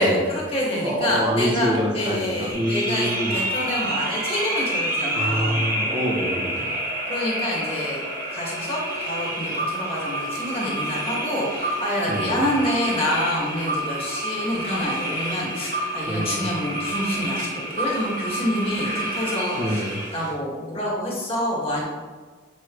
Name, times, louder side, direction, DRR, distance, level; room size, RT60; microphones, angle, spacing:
voice 1, 0.0-5.6 7.1-8.0 8.3-21.8, left 1 dB, 30° left, -5 dB, 2.1 m, -27 dB
voice 2, 0.8-3.4 5.1-6.7 12.1-12.4 16.1-16.5 19.6-20.0, equal, 20° right, -4 dB, 1.5 m, -26 dB
sound 1, 2.5-20.3, right 1 dB, 45° right, 1.7 m, -28 dB
8.4 x 6.0 x 3.2 m, 1.4 s
head